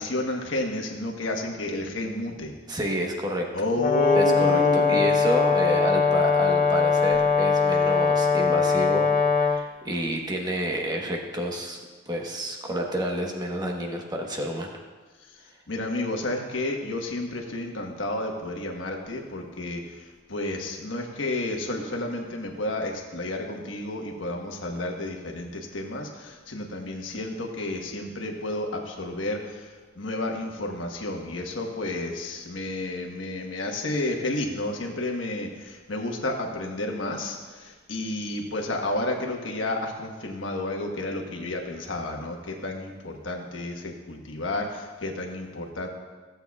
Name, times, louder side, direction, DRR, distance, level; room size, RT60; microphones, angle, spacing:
voice 1, 0.0-2.5 3.5-5.0 15.7-45.9, left 1 dB, 75° left, 1 dB, 1.3 m, -31 dB
voice 2, 2.7-3.5 4.1-11.8 12.1-14.8, equal, 20° right, 1 dB, 1.1 m, -29 dB
Brass instrument, 3.8-9.6, left 5 dB, 45° left, 0.7 m, -21 dB
16.0 x 7.9 x 2.4 m, 1.3 s
head